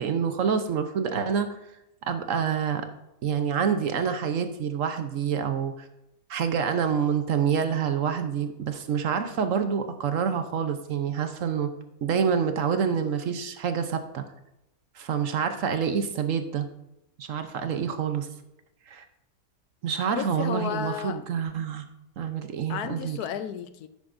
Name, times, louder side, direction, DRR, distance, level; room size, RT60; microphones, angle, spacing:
voice 1, 0.0-1.5 2.1-2.8 3.2-5.9 6.3-11.7 12.0-14.2 14.9-16.7 17.2-18.3 18.9-19.0 19.8-21.8 22.2-23.2, right 7 dB, 60° right, 8 dB, 1.1 m, -27 dB
voice 2, 20.1-21.2 22.7-23.9, left 9 dB, 85° left, 11 dB, 1.2 m, -33 dB
10.5 x 8.3 x 2.6 m, 0.87 s
omnidirectional pair, 1.6 m